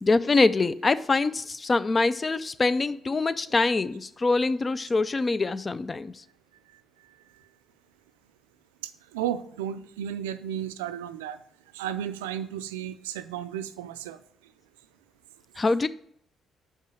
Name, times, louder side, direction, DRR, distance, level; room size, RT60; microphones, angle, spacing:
voice 1, 0.0-6.2 15.6-15.9, left 3 dB, 35° left, 0.4 m, -24 dB
voice 2, 8.8-11.4 11.7-14.2, right 10 dB, 85° right, 0.3 m, -33 dB
5.5 x 4.8 x 6.2 m
hypercardioid pair, 45°, 0 cm